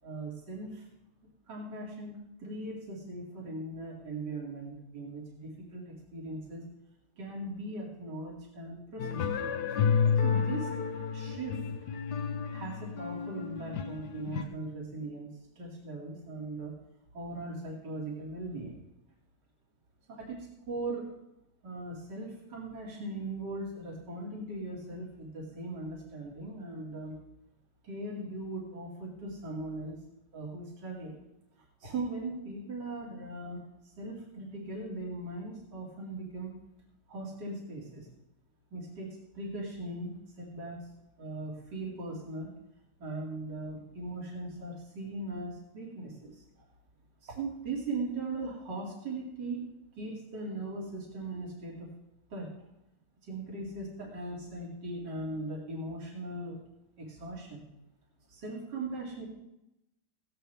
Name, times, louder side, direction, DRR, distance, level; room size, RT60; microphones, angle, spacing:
voice 1, 0.0-0.8 1.5-6.6 7.2-9.2 10.2-10.7 11.1-11.6 12.5-16.7 17.1-18.8 20.1-21.1 21.6-27.2 27.8-29.9 30.3-31.2 31.8-33.6 34.0-36.6 37.1-38.1 38.7-40.8 41.2-42.5 43.0-46.7 47.2-49.6 50.0-51.9 52.3-52.5 53.3-56.6 57.0-57.7 58.3-59.3, right 2 dB, 65° right, -4 dB, 3.2 m, -39 dB
sound 1, 9.0-14.4, left 6 dB, 65° left, 1.5 m, -31 dB
16.5 x 15.5 x 3.4 m, 0.89 s
omnidirectional pair, 2.0 m